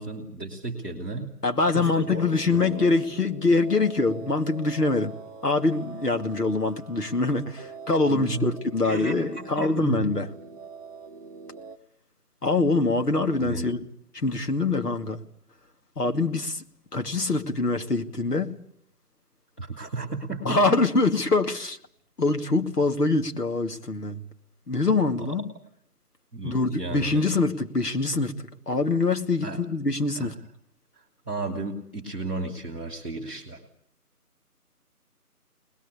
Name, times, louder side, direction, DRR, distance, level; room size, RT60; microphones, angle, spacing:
voice 1, 0.0-1.4 1.7-2.9 8.1-8.5 8.8-10.1 13.4-13.7 19.6-21.0 25.2-25.3 26.3-27.4 29.4-29.6 30.2-30.3 30.9-33.6, right 3 dB, 5° left, 1.4 m, -34 dB
voice 2, 1.4-5.1 5.4-10.2 12.4-13.8 14.1-15.2 16.0-16.6 16.9-18.6 20.4-21.8 22.2-24.2 24.7-25.5 26.4-30.3, left 3 dB, 80° left, 2.5 m, -24 dB
sound 1, 1.7-11.8, right 4 dB, 25° right, 1.3 m, -44 dB
24.5 x 20.5 x 8.5 m
figure-of-eight pair, 170°, 46 cm